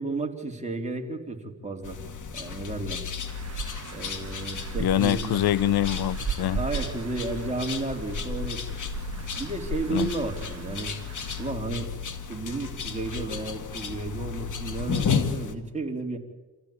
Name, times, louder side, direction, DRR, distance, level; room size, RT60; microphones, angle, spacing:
voice 1, 0.0-2.0 2.3-3.0 3.9-5.4 6.6-8.7 9.4-10.9 11.4-11.9 12.3-16.2, right 3 dB, 20° right, 3.6 m, -32 dB
sound 1, 1.8-15.6, left 6 dB, 50° left, 2.2 m, -33 dB
sound 2, 3.3-11.5, right 6 dB, 40° right, 1.5 m, -38 dB
voice 2, 4.8-6.6 9.9-10.1, left 12 dB, 75° left, 0.7 m, -24 dB
27.5 x 15.0 x 8.8 m
cardioid pair, 80°, 38 cm